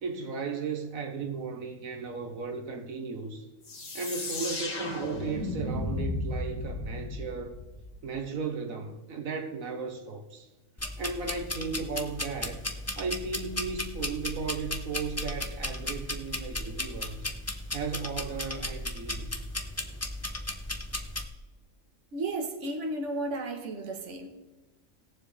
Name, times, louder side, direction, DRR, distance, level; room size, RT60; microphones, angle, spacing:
voice 1, 0.0-3.5 3.9-7.5 8.0-10.5 11.0-12.7 13.0-17.3 17.7-19.4, right 4 dB, 85° right, 1.6 m, -35 dB
sound 1, 3.6-8.2, left 2 dB, 70° left, 2.3 m, -34 dB
sound 2, 10.8-21.2, left 1 dB, 15° left, 0.8 m, -35 dB
voice 2, 22.1-24.3, right 2 dB, 60° right, 1.6 m, -33 dB
19.5 x 7.3 x 3.3 m
omnidirectional pair, 1.4 m